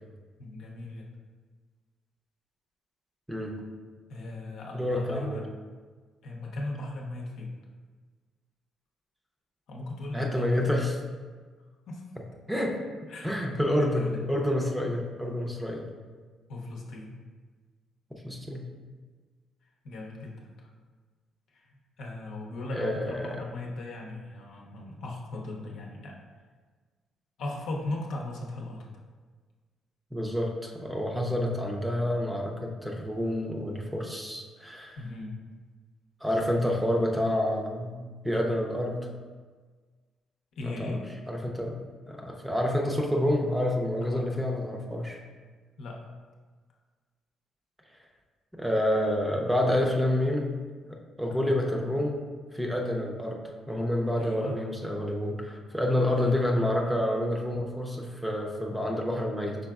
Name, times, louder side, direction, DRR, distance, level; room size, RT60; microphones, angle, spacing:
voice 1, 0.4-1.1 4.1-5.5 6.2-7.5 9.7-10.6 11.9-12.0 13.1-14.2 16.5-17.2 19.8-20.7 21.6-26.3 27.4-28.9 35.0-35.4 40.6-41.0 44.0-44.3 45.8-46.1 51.3-51.6 54.1-54.6 56.2-56.4, left 2 dB, 75° left, -1 dB, 0.7 m, -37 dB
voice 2, 4.7-5.4 10.1-10.9 12.5-12.8 13.2-15.9 18.2-18.7 22.7-23.4 30.1-35.0 36.2-39.1 40.6-41.0 41.3-41.8 42.1-45.2 48.5-50.5 50.9-52.2 52.5-59.6, left 1 dB, 5° right, 0 dB, 0.6 m, -28 dB
5.2 x 3.7 x 2.3 m, 1.5 s
cardioid pair, 90°, 0 cm